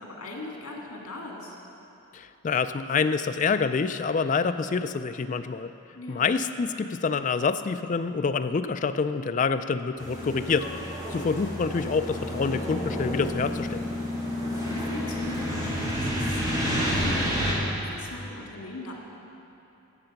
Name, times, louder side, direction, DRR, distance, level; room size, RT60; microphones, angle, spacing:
voice 1, 0.0-1.6 6.0-6.3 11.1-11.6 14.4-18.9, left 2 dB, 85° left, -1 dB, 2.0 m, -40 dB
voice 2, 2.1-5.7 6.1-13.9, left 5 dB, 35° left, 10 dB, 0.3 m, -27 dB
sound 1, 10.0-17.5, equal, 15° right, 2.4 m, -30 dB
13.0 x 7.5 x 5.8 m, 2.9 s
head